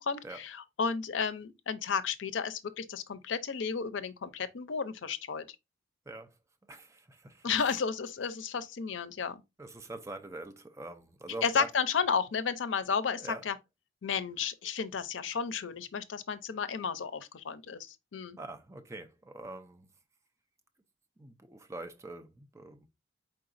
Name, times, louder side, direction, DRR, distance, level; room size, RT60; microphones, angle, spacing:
voice 1, 0.0-5.4 7.4-9.4 11.4-13.5 14.0-18.4, left 6 dB, 85° left, 0.5 m, -33 dB
voice 2, 6.7-7.5 9.6-11.7 13.1-13.4 18.4-19.9 21.2-22.9, right 2 dB, 15° right, 0.5 m, -44 dB
4.5 x 3.9 x 2.5 m
head